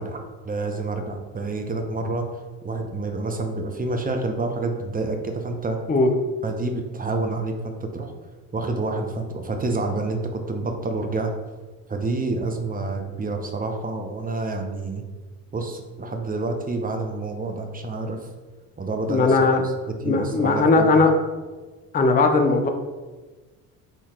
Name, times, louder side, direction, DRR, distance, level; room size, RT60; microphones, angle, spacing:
voice 1, 0.0-2.3 2.6-5.8 6.4-8.1 8.5-11.3 11.9-15.0 15.5-18.2 18.8-19.4 19.6-21.0, right 3 dB, 20° right, 4 dB, 0.7 m, -28 dB
voice 2, 19.1-19.6 20.0-21.1 21.9-22.7, left 3 dB, 20° left, 5 dB, 0.5 m, -18 dB
4.0 x 3.0 x 4.3 m, 1.3 s
supercardioid pair, 70°, 45 cm